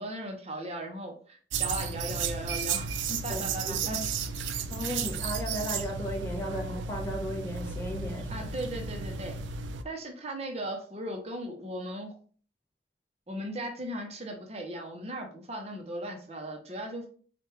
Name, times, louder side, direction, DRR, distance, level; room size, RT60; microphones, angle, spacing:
voice 1, 0.0-4.0 8.3-9.4 9.8-12.1 13.3-17.1, right 1 dB, 35° right, 2 dB, 0.8 m, -37 dB
sound 1, 1.5-9.8, right 5 dB, 85° right, 0.4 m, -33 dB
voice 2, 3.3-4.1 4.7-8.5, equal, 10° left, -3 dB, 1.1 m, -35 dB
4.5 x 2.5 x 3.2 m, 0.43 s
head